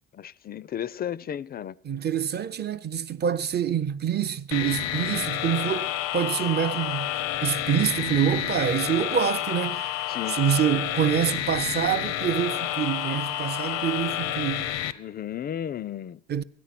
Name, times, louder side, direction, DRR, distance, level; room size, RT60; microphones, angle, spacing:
voice 1, 0.1-1.8 10.1-10.4 15.0-16.2, left 10 dB, 30° left, 0.4 m, -34 dB
voice 2, 1.8-7.1 7.4-9.9 10.3-14.7 16.3-16.4, right 9 dB, 35° right, 0.5 m, -26 dB
sound 1, 4.5-14.9, left 13 dB, 85° left, 0.7 m, -29 dB
14.0 x 9.3 x 5.8 m
supercardioid pair, 85°, 30 cm